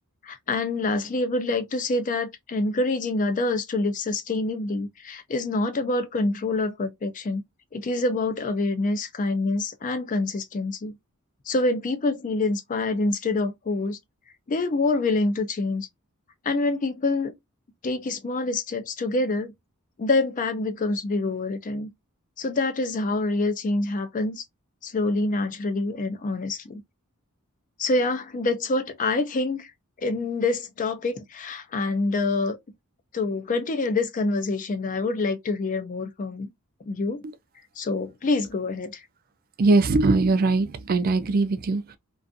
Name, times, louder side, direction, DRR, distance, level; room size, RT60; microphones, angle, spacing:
voice 1, 0.2-7.4 7.7-11.0 11.5-14.0 14.5-15.9 16.4-17.3 17.8-19.5 20.0-21.9 22.4-24.4 24.8-26.8 27.8-29.7 30.0-32.6 33.1-36.5 36.8-37.2 37.8-39.0, left 2 dB, 35° left, 0.4 m, -26 dB
voice 2, 39.6-42.0, right 3 dB, 45° right, 0.4 m, -21 dB
2.4 x 2.3 x 2.5 m
head